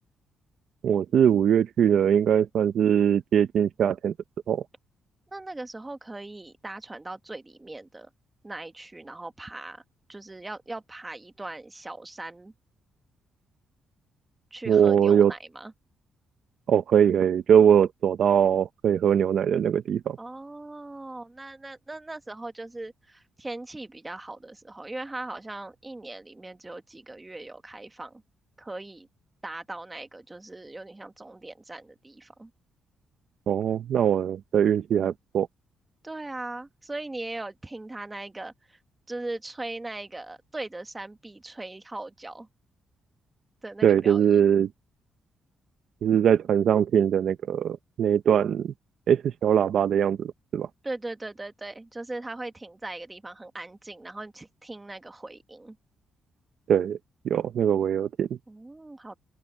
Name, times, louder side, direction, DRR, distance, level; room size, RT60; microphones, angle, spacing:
voice 1, 0.8-4.1 4.5-4.6 14.7-15.3 16.7-20.2 33.5-35.5 43.8-44.7 46.0-48.7 49.1-50.7 56.7-57.0 57.2-58.4, right 8 dB, 65° right, 0.7 m, -22 dB
voice 2, 5.3-8.1 8.4-9.8 10.1-12.5 14.5-15.7 20.2-28.2 28.6-29.1 29.4-32.5 36.0-38.8 39.1-42.5 43.6-44.2 50.8-55.8 58.5-59.2, right 2 dB, 15° right, 1.4 m, -39 dB
open air
cardioid pair, 130°, 0 cm